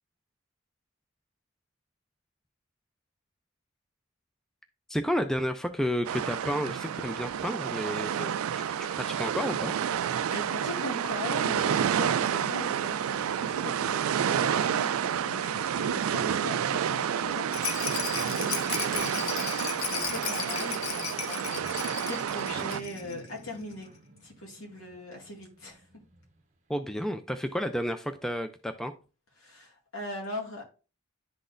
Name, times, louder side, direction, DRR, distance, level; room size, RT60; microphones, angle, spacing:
voice 1, 4.9-8.3 8.8-9.7 26.7-28.9, equal, ahead, 0.4 m, -31 dB
sound 1, 6.0-22.8, right 8 dB, 90° right, 0.4 m, -29 dB
voice 2, 10.0-23.9 24.2-25.9 29.4-30.6, left 1 dB, 75° left, 2.2 m, -40 dB
Rattle, 17.5-23.2 23.5-23.6 23.8-23.9, left 7 dB, 90° left, 0.9 m, -35 dB
sound 2, 21.1-21.2 21.5-26.4, right 1 dB, 35° right, 0.7 m, -51 dB
11.0 x 4.0 x 2.5 m
head